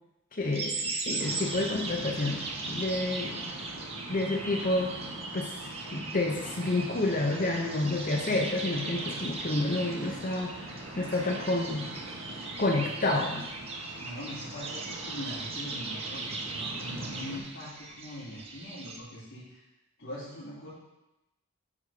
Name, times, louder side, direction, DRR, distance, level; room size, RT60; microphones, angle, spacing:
voice 1, 0.3-3.4 4.1-4.9 5.3-5.6 5.9-10.5 11.0-11.9 12.6-13.5, left 2 dB, 40° left, 1 dB, 0.7 m, -29 dB
sound 1, 0.5-19.0, right 3 dB, 25° right, 0.7 m, -39 dB
sound 2, 1.2-17.4, right 1 dB, 80° right, 1.4 m, -43 dB
voice 2, 14.0-19.6 20.0-20.7, left 1 dB, 55° left, -14 dB, 3.0 m, -42 dB
8.6 x 4.1 x 5.0 m, 0.95 s
head